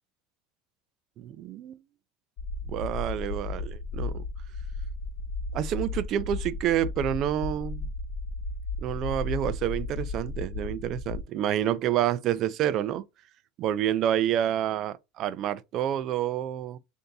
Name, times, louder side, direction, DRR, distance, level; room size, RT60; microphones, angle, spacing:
voice 1, 1.2-1.8 2.7-4.2 5.5-7.9 8.8-13.0 13.6-16.8, right 11 dB, 45° right, 0.4 m, -28 dB
sound 1, 2.4-11.2, left 3 dB, 50° left, 0.7 m, -34 dB
3.4 x 2.7 x 3.9 m
supercardioid pair, 140°, 0 cm